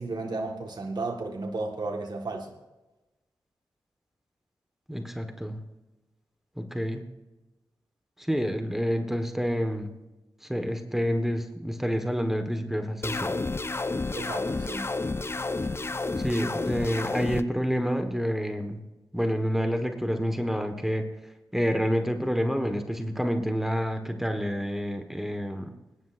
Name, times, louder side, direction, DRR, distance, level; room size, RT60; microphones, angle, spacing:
voice 1, 0.0-2.5 14.1-14.9, right 3 dB, 55° right, 2 dB, 1.6 m, -33 dB
voice 2, 4.9-5.6 6.6-7.0 8.2-9.9 10.4-13.4 16.2-18.8 19.1-25.7, equal, 5° right, 6 dB, 1.4 m, -28 dB
sound 1, 13.0-17.4, left 3 dB, 30° left, 0.5 m, -30 dB
20.0 x 10.5 x 2.6 m, 1.0 s
cardioid pair, 50°, 9 cm